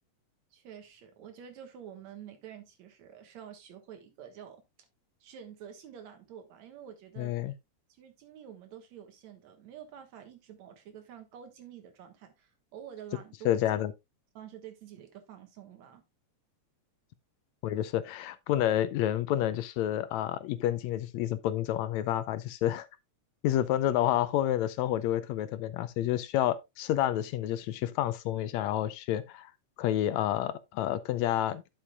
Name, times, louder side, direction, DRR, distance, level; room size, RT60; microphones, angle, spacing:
voice 1, 0.5-4.6 5.2-7.5 7.9-13.5 14.3-16.0, right 9 dB, 70° right, 2.6 m, -48 dB
voice 2, 7.2-7.5 13.5-13.9 17.6-22.9 23.4-29.5 29.8-31.6, left 12 dB, 80° left, 1.8 m, -29 dB
10.5 x 7.3 x 2.3 m
omnidirectional pair, 3.3 m